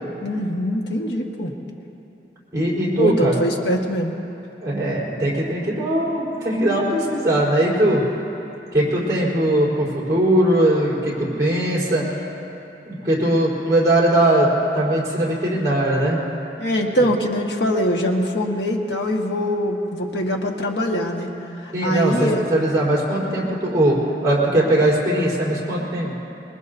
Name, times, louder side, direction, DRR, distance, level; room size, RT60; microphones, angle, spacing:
voice 1, 0.2-1.5 3.0-4.1 16.6-21.3 21.8-22.4, equal, 80° left, 1 dB, 1.6 m, -23 dB
voice 2, 2.5-3.4 4.6-8.0 8.7-12.1 12.8-16.2 21.7-26.2, right 1 dB, 20° right, -8 dB, 4.2 m, -20 dB
24.5 x 21.5 x 2.8 m, 2.9 s
head